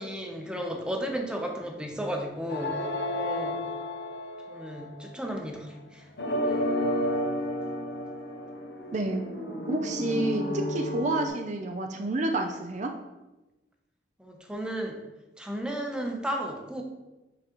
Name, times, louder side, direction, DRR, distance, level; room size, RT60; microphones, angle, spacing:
voice 1, 0.0-2.8 3.2-3.6 4.5-6.1 6.4-6.6 14.2-15.0 15.4-16.8, equal, 5° right, 2 dB, 0.8 m, -34 dB
sound 1, 2.5-5.0 6.2-11.3, left 1 dB, 70° left, 0.8 m, -31 dB
voice 2, 8.9-9.2 9.6-12.9, right 2 dB, 45° right, 4 dB, 0.5 m, -29 dB
9.0 x 3.9 x 3.0 m, 1.0 s
head